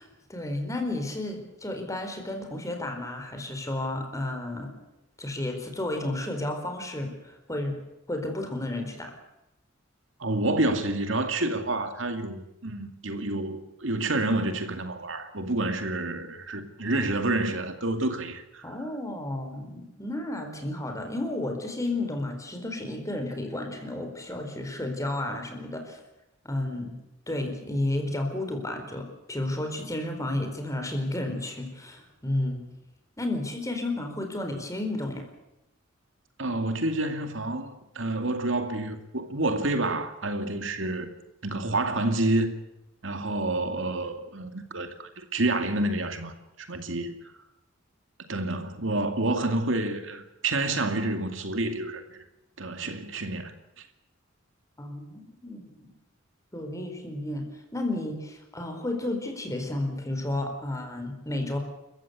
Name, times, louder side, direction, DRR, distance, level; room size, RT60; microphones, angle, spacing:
voice 1, 0.0-4.7 5.2-7.8 8.1-9.1 18.6-26.0 26.4-27.0 27.3-32.6 33.2-35.3 54.8-55.9 56.5-57.5 57.7-61.6, left 1 dB, 15° left, 4.4 m, -32 dB
voice 2, 10.2-18.8 36.4-41.1 41.4-42.5 43.0-47.1 48.2-52.2 52.6-53.9, right 2 dB, 70° right, 2.4 m, -29 dB
29.5 x 15.0 x 8.4 m
head